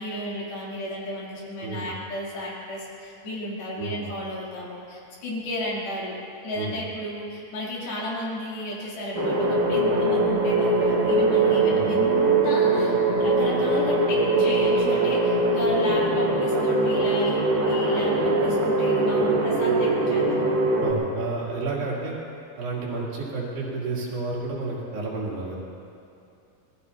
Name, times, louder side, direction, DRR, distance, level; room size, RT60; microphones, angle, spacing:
voice 1, 0.0-6.1 6.4-12.9 13.2-20.4, left 1 dB, 70° left, -6 dB, 4.7 m, -33 dB
voice 2, 1.6-1.9 3.8-4.1 6.5-6.8 11.7-11.9 20.8-22.2 22.6-25.6, right 3 dB, 85° right, -5 dB, 4.9 m, -31 dB
sound 1, 9.1-20.9, right 2 dB, 70° right, 3.8 m, -22 dB
25.0 x 19.5 x 2.8 m, 2.6 s
omnidirectional pair, 4.7 m